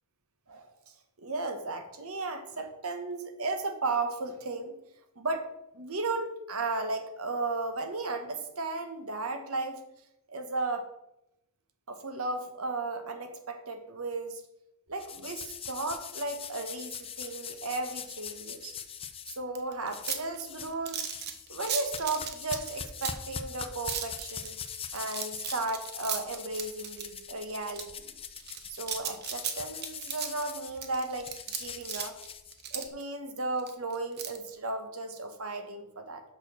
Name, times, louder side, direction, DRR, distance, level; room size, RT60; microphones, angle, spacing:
voice 1, 1.2-4.8 5.2-5.5 5.7-9.8 10.3-10.9 11.9-14.4 14.9-18.8 19.3-21.1 21.5-24.6 24.9-28.2 28.7-31.3 31.6-32.2 32.7-36.2, right 3 dB, 85° right, 7 dB, 1.3 m, -35 dB
sound 1, 15.0-19.4 19.9-20.7 21.0-32.9, left 7 dB, 25° left, 0.6 m, -42 dB
sound 2, 19.5-23.3 23.9-27.2 27.7-27.8 28.4-33.0 33.6-34.4, right 8 dB, 50° right, 1.0 m, -36 dB
6.5 x 5.9 x 6.4 m, 0.84 s
head